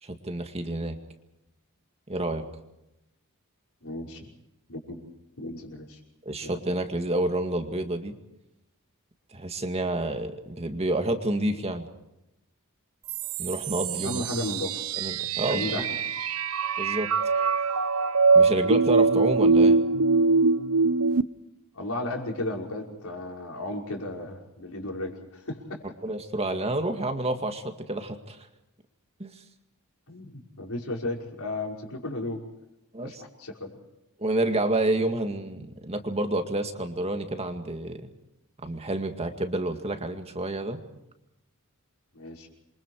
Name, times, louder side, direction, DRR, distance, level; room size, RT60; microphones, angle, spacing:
voice 1, 0.0-1.0 2.1-2.5 6.2-8.1 9.3-11.8 13.4-14.2 15.0-15.7 16.8-17.1 18.3-19.8 26.0-28.5 29.2-29.3 32.9-33.2 34.2-38.1 38.6-40.8, right 1 dB, 30° right, 6 dB, 2.1 m, -29 dB
voice 2, 3.8-4.3 4.7-5.0 5.4-6.0 6.4-6.6 14.0-14.8 15.5-15.9 21.7-25.8 30.1-32.4 33.0-33.7 42.1-42.5, left 1 dB, 75° left, 1 dB, 5.5 m, -34 dB
Glittery Glissando, 13.1-21.2, right 4 dB, 85° right, 0.7 m, -23 dB
28.0 x 24.0 x 4.8 m, 0.88 s
head